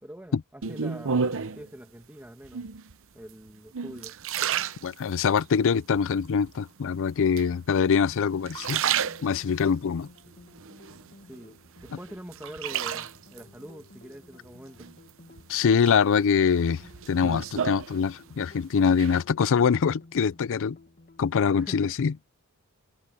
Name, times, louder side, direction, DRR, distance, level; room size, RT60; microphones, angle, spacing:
voice 1, 0.0-2.7 3.1-4.1 11.2-11.6 11.8-14.9 21.5-21.9, equal, 10° right, 1.6 m, -44 dB
sound 1, 0.6-1.7 2.4-2.9 3.5-5.4 5.9-6.6 7.4-8.0 8.4-9.7 10.2-11.4 11.8-13.4 14.8-15.4 15.8-18.5 18.7-19.2, right 7 dB, 65° right, 0.8 m, -31 dB
voice 2, 4.8-8.8 9.2-10.1 15.5-16.8 17.1-20.8 21.2-22.1, left 6 dB, 60° left, 0.4 m, -24 dB
sound 2, 8.0-21.7, left 2 dB, 45° left, 1.7 m, -54 dB
head